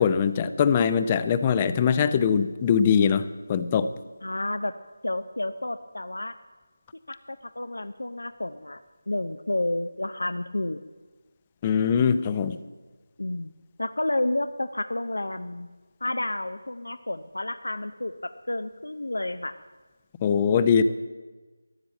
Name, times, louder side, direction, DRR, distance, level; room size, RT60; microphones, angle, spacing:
voice 1, 0.0-3.9 11.6-12.6 20.2-20.8, left 7 dB, 20° left, 13 dB, 0.5 m, -22 dB
voice 2, 4.2-4.7 5.0-6.4 7.1-10.8 13.2-13.5 13.8-15.7 16.0-19.5, left 1 dB, 80° left, 12 dB, 0.6 m, -30 dB
13.0 x 10.5 x 7.4 m, 1.3 s
figure-of-eight pair, 165°, 0 cm